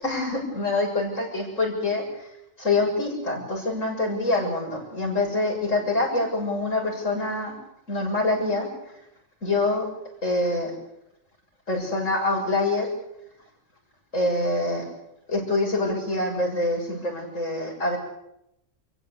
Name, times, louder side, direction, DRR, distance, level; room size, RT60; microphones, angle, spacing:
voice 1, 0.0-2.0 2.6-7.5 7.9-8.7 9.4-9.9 10.2-10.7 11.7-12.9 14.1-14.9 15.3-18.0, left 2 dB, 70° left, -1 dB, 7.6 m, -25 dB
28.0 x 16.0 x 8.4 m, 0.81 s
omnidirectional pair, 1.4 m